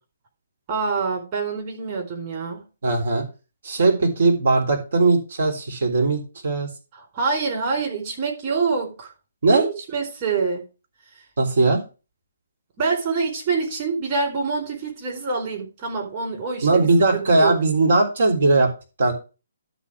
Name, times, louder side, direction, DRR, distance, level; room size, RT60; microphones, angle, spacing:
voice 1, 0.7-2.6 7.1-9.1 9.5-10.6 12.8-17.5, right 4 dB, 35° right, 4.1 m, -26 dB
voice 2, 2.8-3.2 3.6-6.7 9.4-9.7 11.4-11.8 16.6-18.7 19.0-19.1, right 3 dB, 60° right, 3.5 m, -19 dB
12.0 x 4.2 x 6.2 m
figure-of-eight pair, 135°, 0 cm